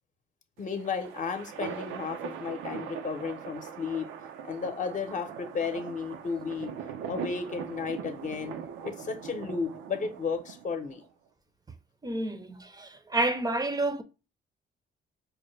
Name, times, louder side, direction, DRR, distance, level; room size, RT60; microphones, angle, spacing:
voice 1, 0.6-4.1 4.4-6.7 7.0-8.6 8.8-11.0, left 5 dB, 40° left, 0.8 m, -33 dB
sound 1, 0.6-11.0, right 8 dB, 90° right, 0.6 m, -41 dB
voice 2, 12.0-14.0, right 2 dB, 20° right, 0.6 m, -29 dB
5.2 x 2.2 x 3.2 m
cardioid pair, 90°, 20 cm